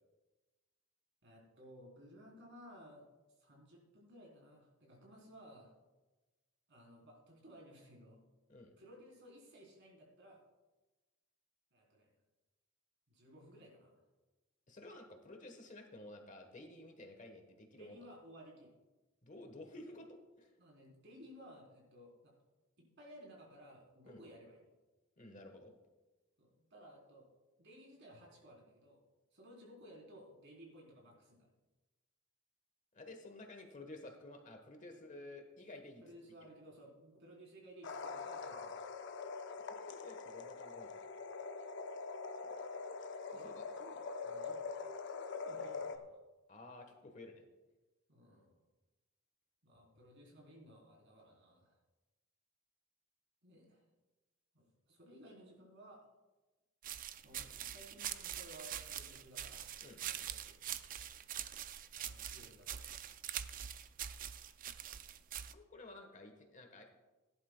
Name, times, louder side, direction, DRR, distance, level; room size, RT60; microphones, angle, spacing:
voice 1, 1.2-3.1 3.4-5.7 6.7-8.2 8.8-10.4 11.7-12.1 13.1-14.0 17.7-18.7 19.9-20.0 20.6-22.3 22.8-24.6 26.4-27.2 27.6-29.0 29.3-31.5 36.0-38.9 43.3-46.2 48.1-48.6 49.6-51.8 53.4-53.8 54.5-56.1 57.2-59.7 60.0-61.1 61.9-63.0, equal, 55° right, -2 dB, 3.6 m, -58 dB
voice 2, 14.7-18.0 19.2-20.5 24.0-24.2 25.2-25.7 32.9-36.0 39.7-40.9 43.3-43.6 46.5-47.4 59.8-60.0 65.5-66.9, left 2 dB, 35° left, 4 dB, 1.2 m, -53 dB
sound 1, 37.8-46.0, left 4 dB, 55° left, 0.7 m, -44 dB
sound 2, 56.8-65.5, right 10 dB, 40° right, 0.4 m, -44 dB
17.0 x 11.0 x 2.2 m, 1.1 s
head